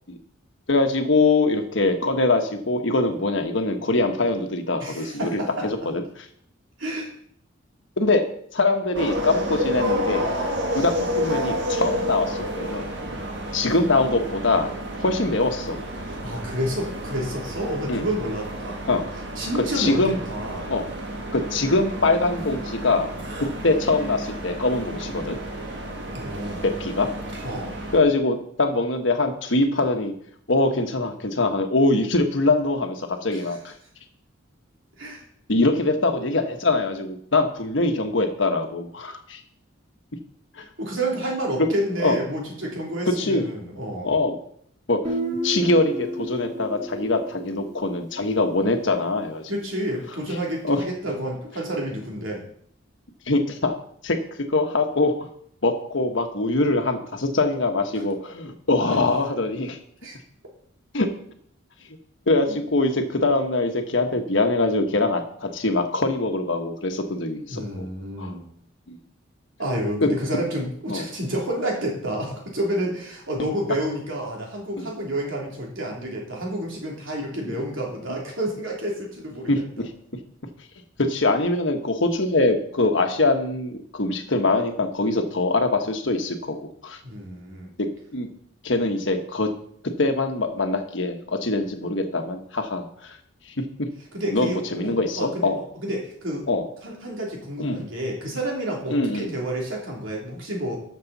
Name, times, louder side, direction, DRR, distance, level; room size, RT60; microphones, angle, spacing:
voice 1, 0.7-6.0 8.0-8.2 8.5-10.3 10.7-12.9 13.5-14.7 15.0-15.8 17.9-18.1 18.9-19.1 19.7-20.2 20.7-20.9 21.3-23.1 23.6-25.4 26.6-27.1 27.9-30.1 30.5-33.7 35.5-39.4 40.6-40.7 42.0-42.2 43.1-43.5 44.0-44.4 44.9-45.0 45.4-49.5 50.6-50.8 53.3-53.7 54.0-54.2 54.5-55.1 55.6-59.8 60.9-61.1 62.3-67.9 68.2-68.4 68.9-69.0 70.0-70.1 70.9-71.1 74.8-74.9 77.5-77.6 79.5-79.8 81.0-86.6 86.8-87.0 87.8-87.9 88.1-88.3 88.6-89.5 90.0-93.2 94.3-95.6 96.5-96.7 97.6-97.8 98.9-99.3, left 2 dB, 70° left, 5 dB, 1.3 m, -23 dB
voice 2, 4.8-5.7 6.8-7.1 16.0-18.8 19.3-20.7 26.1-26.6 27.4-27.7 33.3-33.5 35.0-35.2 40.8-44.1 49.5-52.4 58.9-59.0 60.0-60.2 62.5-62.7 67.5-68.4 69.6-79.6 87.0-87.7 94.1-96.6 96.8-100.8, right 1 dB, 75° right, -1 dB, 3.0 m, -30 dB
sound 1, 8.9-28.0, equal, 60° right, 1.7 m, -30 dB
Guitar, 45.0-48.7, right 1 dB, 35° right, 1.4 m, -32 dB
13.0 x 6.8 x 4.1 m, 0.65 s
head